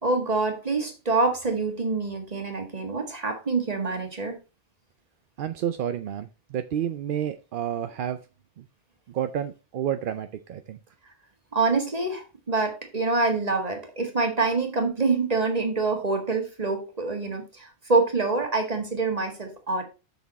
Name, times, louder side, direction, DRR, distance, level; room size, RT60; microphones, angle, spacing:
voice 1, 0.0-4.4 11.5-19.8, right 3 dB, 35° right, 4 dB, 1.7 m, -26 dB
voice 2, 5.4-8.2 8.6-8.7 9.1-10.8, right 9 dB, 60° right, 10 dB, 0.6 m, -30 dB
7.0 x 6.3 x 4.1 m, 0.30 s
omnidirectional pair, 1.2 m